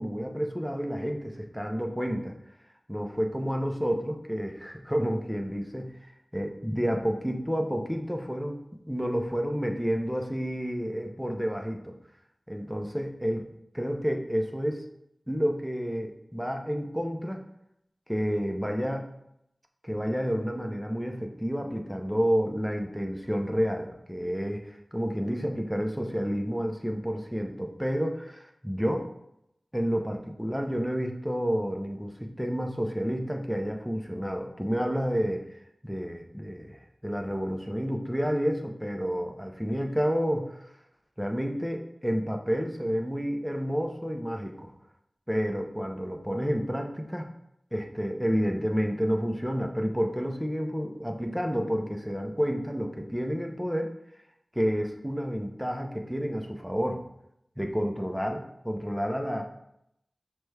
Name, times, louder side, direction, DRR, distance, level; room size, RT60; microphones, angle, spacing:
voice 1, 0.0-2.3 2.9-6.0 6.3-8.6 8.9-11.9 12.5-13.4 13.7-14.9 15.3-17.4 18.1-19.1 19.8-29.1 29.7-35.5 35.8-40.5 41.2-44.7 45.3-47.3 47.7-54.0 54.5-57.0 57.6-59.4, equal, ahead, 3 dB, 0.5 m, -30 dB
5.8 x 2.2 x 3.3 m, 0.79 s
wide cardioid pair, 45°, 0 cm